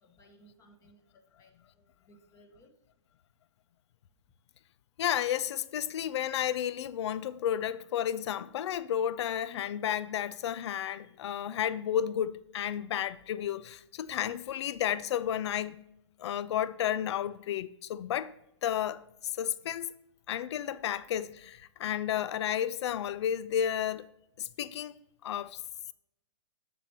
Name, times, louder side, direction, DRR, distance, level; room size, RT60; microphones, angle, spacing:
voice 1, 0.0-2.7, right 1 dB, 20° left, 1.1 m, -61 dB
voice 2, 5.0-15.8 16.2-18.3 18.6-19.9 20.3-24.1 24.4-24.9 25.2-25.6, left 10 dB, 65° left, 0.4 m, -32 dB
7.7 x 6.8 x 2.9 m
hypercardioid pair, 140°, 16 cm